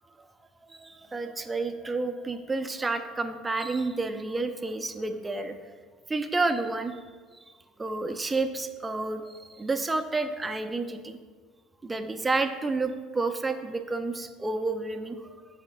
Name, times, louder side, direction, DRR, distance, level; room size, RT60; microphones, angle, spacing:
voice 1, 0.7-5.7 6.1-7.0 7.8-11.2 11.8-15.5, right 3 dB, 20° right, 8 dB, 0.5 m, -30 dB
11.0 x 5.0 x 2.2 m, 1.5 s
hypercardioid pair, 70°, 0 cm